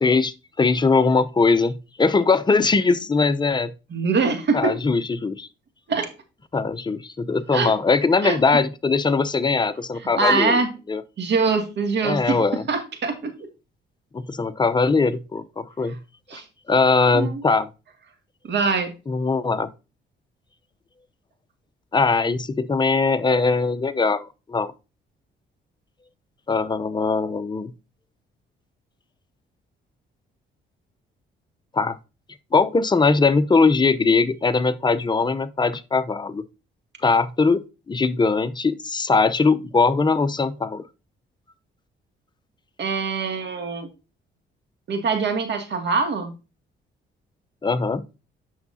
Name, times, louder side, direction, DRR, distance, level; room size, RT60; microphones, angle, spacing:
voice 1, 0.0-3.7 4.5-5.5 6.5-11.0 12.0-12.6 14.1-16.0 16.7-17.7 19.1-19.7 21.9-24.7 26.5-27.7 31.7-32.0 32.5-36.4 37.0-40.8 47.6-48.0, left 4 dB, 20° left, 0.7 m, -21 dB
voice 2, 3.9-4.8 5.9-6.1 7.5-7.7 8.2-8.4 10.2-10.7 11.2-12.4 12.7-13.2 16.3-16.4 17.1-17.4 18.5-18.9 42.8-43.9 44.9-46.3, right 4 dB, 65° right, 2.2 m, -23 dB
8.8 x 6.5 x 2.7 m
cardioid pair, 90°, 20 cm